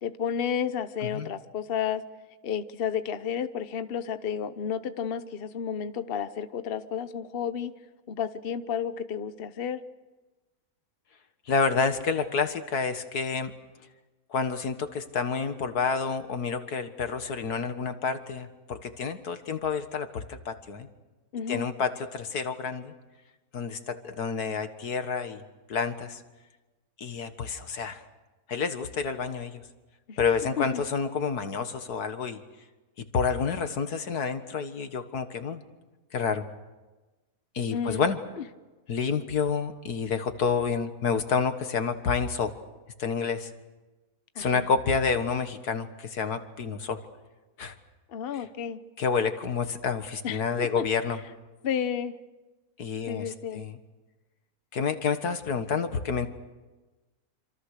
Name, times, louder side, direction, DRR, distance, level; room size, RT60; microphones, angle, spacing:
voice 1, 0.0-2.0 2.4-7.7 8.1-9.8 21.3-21.7 30.1-30.2 30.6-30.8 37.7-38.1 44.4-44.6 48.1-48.8 50.2-50.8 51.6-52.1 53.1-53.6, left 8 dB, 45° left, 11 dB, 1.0 m, -31 dB
voice 2, 1.0-1.3 11.5-13.5 14.3-20.9 21.5-22.9 23.5-25.4 25.7-26.2 27.0-28.0 28.5-29.6 30.2-32.4 33.1-35.6 36.1-36.4 37.5-38.2 38.9-42.5 43.0-43.5 44.4-47.0 47.6-47.8 48.3-48.5 49.0-51.2 52.8-53.8 54.7-56.3, left 5 dB, 85° left, 9 dB, 2.1 m, -29 dB
27.5 x 26.0 x 6.7 m, 1.2 s
omnidirectional pair, 1.6 m